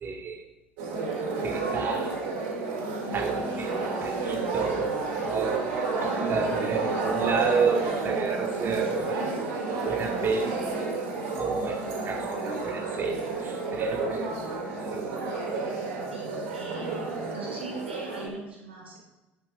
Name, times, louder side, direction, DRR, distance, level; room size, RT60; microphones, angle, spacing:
voice 1, 0.0-0.4 1.4-2.1 3.1-5.6 6.0-9.3 9.8-10.6 11.4-15.1, right 5 dB, 35° right, 2 dB, 2.1 m, -31 dB
sound 1, 0.8-18.3, right 3 dB, 65° right, 2.9 m, -30 dB
voice 2, 16.1-19.0, right 3 dB, 80° right, -3 dB, 2.5 m, -40 dB
11.0 x 8.8 x 3.8 m, 1.1 s
figure-of-eight pair, 60°, 6 cm